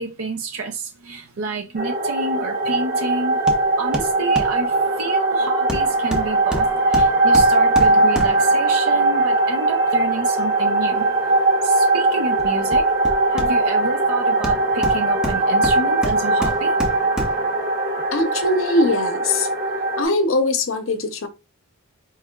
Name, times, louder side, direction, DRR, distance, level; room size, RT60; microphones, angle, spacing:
voice 1, 0.0-3.4 3.8-11.0 11.6-12.9 13.3-16.7, right 3 dB, 75° right, 0.5 m, -29 dB
sound 1, 1.8-20.0, right 2 dB, 40° right, 0.8 m, -20 dB
Hammer, 3.5-3.7 3.9-4.6 5.7-8.6 12.4-13.9 14.4-17.5 18.0-18.1, equal, 5° right, 0.4 m, -29 dB
voice 2, 18.1-19.5 20.0-21.3, left 2 dB, 65° left, 0.7 m, -21 dB
4.6 x 3.2 x 2.3 m
head